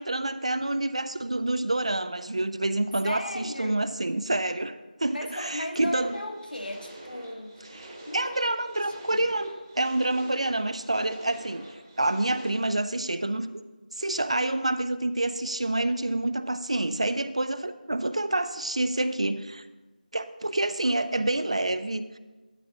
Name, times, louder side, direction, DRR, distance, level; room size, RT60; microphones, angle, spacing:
voice 1, 0.0-6.1 7.7-11.7 12.0-13.5 14.0-19.7 20.1-22.2, right 2 dB, 40° right, 12 dB, 0.4 m, -28 dB
voice 2, 3.0-3.8 5.1-7.7 8.1-8.6 9.1-9.3, left 1 dB, 75° left, 4 dB, 1.4 m, -36 dB
sound 1, 5.9-12.5, right 1 dB, 20° right, 1.1 m, -46 dB
12.0 x 9.1 x 2.9 m, 1.2 s
figure-of-eight pair, 170°, 5 cm